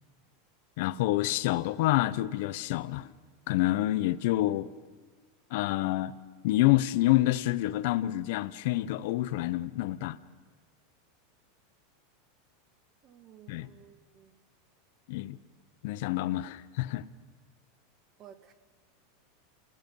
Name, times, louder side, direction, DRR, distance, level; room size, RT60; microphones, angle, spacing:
voice 1, 0.8-3.1 3.5-4.7 5.5-6.1 6.4-10.2 13.5-13.7 15.1-15.4 15.8-17.1, left 16 dB, 65° left, 0.7 m, -27 dB
voice 2, 13.0-14.4 18.2-18.5, right 9 dB, 40° right, 1.6 m, -54 dB
29.5 x 16.5 x 5.4 m
supercardioid pair, 120°, 0 cm